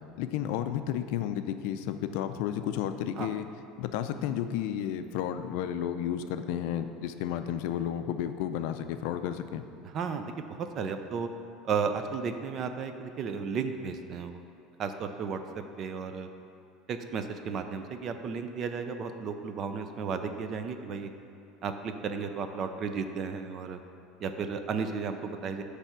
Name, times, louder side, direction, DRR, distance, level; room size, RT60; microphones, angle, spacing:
voice 1, 0.2-3.5 3.8-9.6, left 10 dB, 70° left, 9 dB, 0.4 m, -32 dB
voice 2, 9.9-11.3 11.6-14.4 14.8-15.4 15.8-16.3 16.9-21.1 21.6-23.8 24.2-25.6, right 5 dB, 35° right, 8 dB, 0.5 m, -34 dB
9.9 x 3.4 x 6.1 m, 2.5 s
cardioid pair, 155°, 0 cm